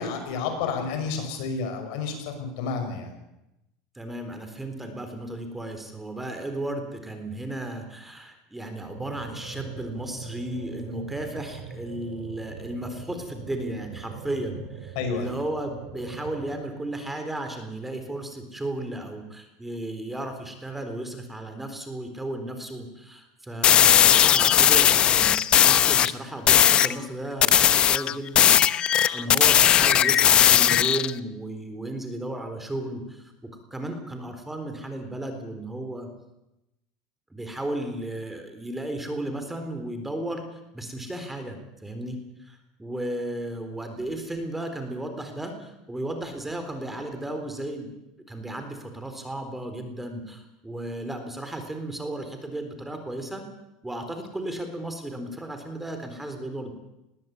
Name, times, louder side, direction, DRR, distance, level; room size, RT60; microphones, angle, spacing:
voice 1, 0.0-3.1 14.9-15.3, left 5 dB, 70° left, 6 dB, 5.9 m, -30 dB
voice 2, 4.0-28.6 28.9-36.1 37.3-47.9 48.3-53.4 53.8-56.7, right 1 dB, 5° right, 6 dB, 3.9 m, -34 dB
sound 1, 8.9-16.5, right 5 dB, 85° right, 6.3 m, -41 dB
sound 2, 23.6-26.1 26.5-26.9 27.4-31.1, left 10 dB, 35° left, 0.9 m, -18 dB
20.5 x 17.0 x 8.5 m, 0.91 s
supercardioid pair, 120°, 3 cm